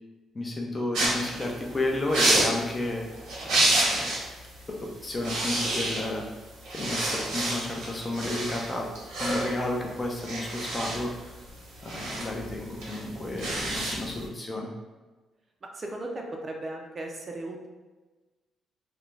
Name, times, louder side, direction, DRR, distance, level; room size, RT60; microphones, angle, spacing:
voice 1, 0.3-3.0 3.4-4.1 4.7-6.2 6.7-8.9 9.2-11.4 11.8-14.7, left 2 dB, 30° left, 0 dB, 0.6 m, -32 dB
sound 1, 0.9-4.3 4.6-4.8 5.1-6.3 6.6-14.2, right 1 dB, 85° right, 0.8 m, -29 dB
voice 2, 15.6-17.7, right 1 dB, 35° right, 1 dB, 0.4 m, -36 dB
2.5 x 2.1 x 3.1 m, 1.2 s
cardioid pair, 90°, 0 cm